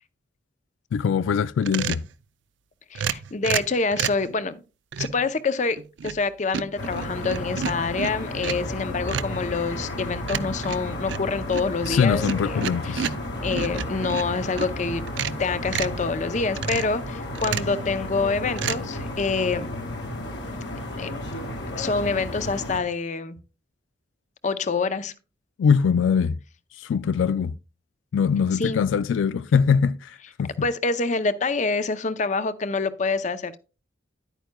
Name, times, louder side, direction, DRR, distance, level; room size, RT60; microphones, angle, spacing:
voice 1, 0.9-2.0 11.8-13.1 25.6-26.4 26.8-27.5 28.1-30.5, left 6 dB, 80° left, 0.3 m, -22 dB
sound 1, 1.6-2.1 2.9-4.3 4.9-5.3 5.8-6.3 6.5-8.7 9.1-9.4 10.3-14.7 15.1-16.0 16.6-17.0 17.3-17.8 18.6-18.8, right 8 dB, 70° right, 0.4 m, -31 dB
voice 2, 2.9-4.6 5.0-12.5 12.9-13.1 13.4-15.0 15.4-19.7 21.0-21.1 21.8-23.4 24.4-25.1 28.6-28.8 30.6-33.6, left 4 dB, 40° left, 0.5 m, -26 dB
sound 2, 6.8-22.8, left 1 dB, 60° left, 1.8 m, -33 dB
10.5 x 9.0 x 2.2 m
head